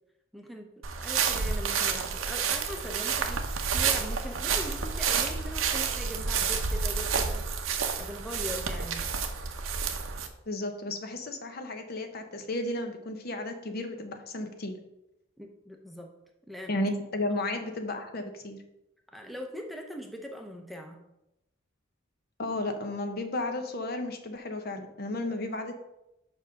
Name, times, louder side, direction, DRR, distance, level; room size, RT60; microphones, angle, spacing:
voice 1, 0.3-0.7 1.0-7.7 7.9-9.1 15.4-16.1 16.5-16.7 19.1-21.0, equal, ahead, 2 dB, 0.6 m, -41 dB
sound 1, 0.8-10.3, right 6 dB, 85° right, 0.8 m, -29 dB
voice 2, 10.5-14.8 16.7-18.6 22.4-25.7, left 2 dB, 50° left, 6 dB, 0.8 m, -33 dB
5.3 x 4.8 x 6.3 m, 0.88 s
head